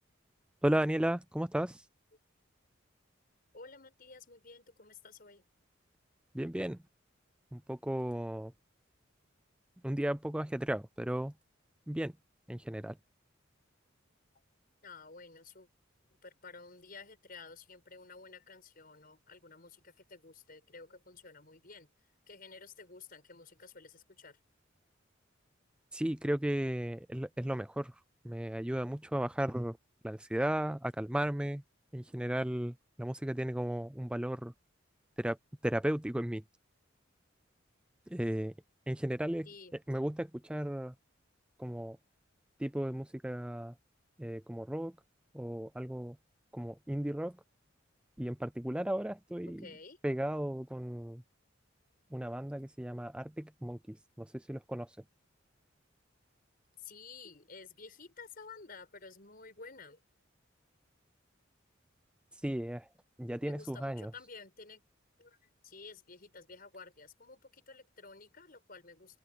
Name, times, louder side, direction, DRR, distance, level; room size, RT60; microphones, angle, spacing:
voice 1, 0.6-1.9 6.3-6.8 7.5-8.5 9.8-11.3 11.9-12.1 12.5-13.0 25.9-29.8 30.0-31.6 31.9-34.5 35.2-35.4 35.6-36.4 38.1-38.5 38.9-39.5 39.9-40.9 41.6-42.0 42.6-43.7 44.2-45.0 45.3-46.2 46.5-47.4 48.2-49.7 50.0-51.2 52.1-55.0 62.3-62.9 63.2-64.1, right 1 dB, 5° right, 0.4 m, -35 dB
voice 2, 3.5-5.5 14.8-15.7 16.2-21.9 22.3-24.4 39.4-39.7 49.5-50.0 56.8-60.0 63.4-64.8 65.2-69.2, left 4 dB, 45° left, 5.7 m, -52 dB
open air
head